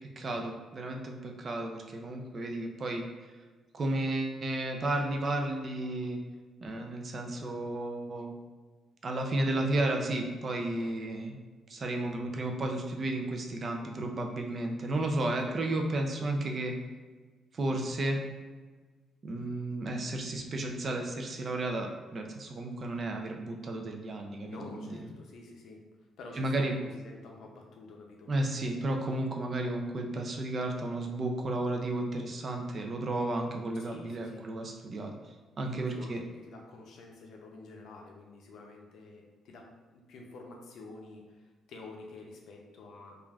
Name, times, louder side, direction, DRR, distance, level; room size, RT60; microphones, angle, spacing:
voice 1, 0.2-3.1 3.7-6.2 6.6-8.3 9.0-11.4 11.7-16.7 17.5-18.2 19.2-25.1 26.4-26.8 28.3-35.1 35.6-36.2, right 1 dB, 45° right, 3 dB, 0.4 m, -33 dB
voice 2, 24.4-25.8 26.2-28.3 33.8-34.5 35.9-43.2, left 3 dB, 75° left, 0 dB, 0.5 m, -49 dB
3.1 x 2.4 x 2.3 m, 1.4 s
cardioid pair, 90°, 0 cm